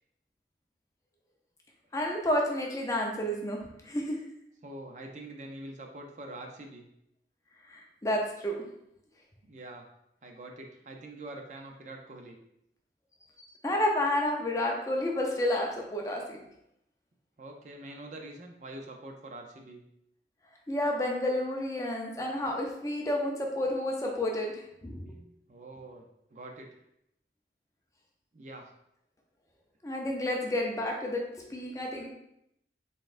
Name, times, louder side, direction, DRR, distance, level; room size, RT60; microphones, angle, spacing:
voice 1, 1.9-4.2 7.7-8.6 13.6-16.4 20.7-25.1 29.8-32.1, left 1 dB, 20° left, 0 dB, 0.5 m, -30 dB
voice 2, 4.6-6.9 9.4-9.9 10.2-12.4 17.4-19.8 25.1-26.0 26.3-26.7 28.3-28.7, right 1 dB, 40° right, 2 dB, 0.4 m, -45 dB
4.0 x 3.7 x 2.4 m, 0.79 s
head